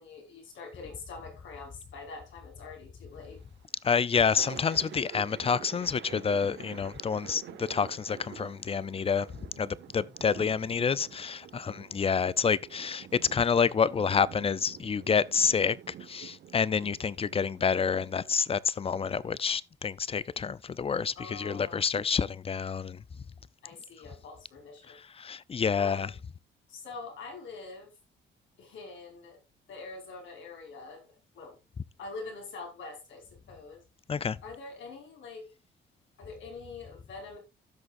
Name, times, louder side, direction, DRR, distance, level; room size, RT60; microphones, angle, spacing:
voice 1, 0.0-3.4 11.5-11.8 21.2-21.9 23.6-25.0 25.8-26.2 26.7-27.9 28.6-29.4 29.7-31.6 32.0-33.8 34.4-35.5 36.2-37.4, left 3 dB, 70° left, 5.2 m, -44 dB
Thunder, 3.1-3.5 3.9-18.3, right 9 dB, 65° right, 1.3 m, -48 dB
voice 2, 3.8-9.3 9.6-13.1 13.3-15.8 16.1-23.0 25.2-26.1 34.1-34.4, left 6 dB, 30° left, 0.5 m, -28 dB
15.5 x 6.4 x 2.6 m
cardioid pair, 90°, 20 cm